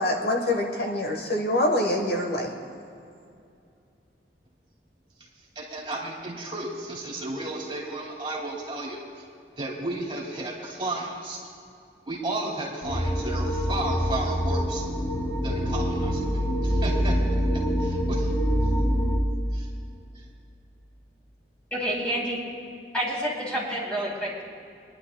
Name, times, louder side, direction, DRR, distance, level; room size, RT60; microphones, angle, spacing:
voice 1, 0.0-2.5, left 1 dB, 60° left, 1 dB, 1.2 m, -25 dB
voice 2, 5.6-9.2 9.6-11.4 12.1-14.9 15.4-16.2 16.6-17.1 17.8-18.3 19.5-19.7 20.1-20.2, right 2 dB, 30° right, -3 dB, 2.3 m, -33 dB
sound 1, 12.8-19.2, equal, 35° left, 2.5 m, -25 dB
voice 3, 21.7-22.4 22.9-24.4, equal, 5° left, -6 dB, 3.0 m, -28 dB
26.0 x 11.0 x 2.3 m, 2.5 s
head